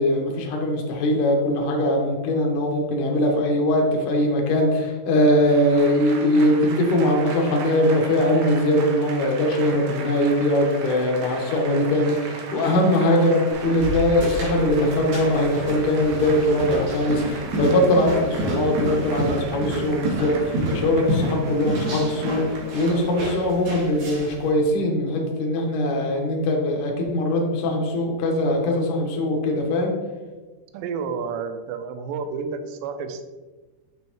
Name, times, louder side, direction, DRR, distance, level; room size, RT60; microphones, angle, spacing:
voice 1, 0.0-29.9, left 1 dB, 75° left, 0 dB, 2.0 m, -21 dB
Applause / Crowd, 5.3-23.9, right 3 dB, 75° right, 2.3 m, -38 dB
sound 1, 13.5-24.4, right 1 dB, 55° right, 2.5 m, -29 dB
voice 2, 30.7-33.2, right 5 dB, 90° right, 8 dB, 2.8 m, -30 dB
6.3 x 6.2 x 3.0 m, 1.2 s
omnidirectional pair, 4.9 m